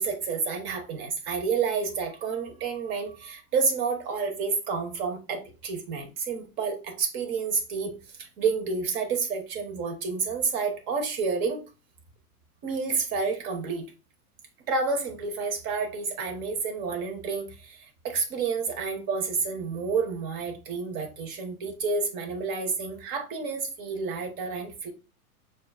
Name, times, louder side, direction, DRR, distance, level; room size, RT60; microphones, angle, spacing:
voice 1, 0.0-11.6 12.6-13.9 14.7-24.9, right 5 dB, 25° right, 0.7 m, -29 dB
6.3 x 2.4 x 2.3 m
supercardioid pair, 155°, 44 cm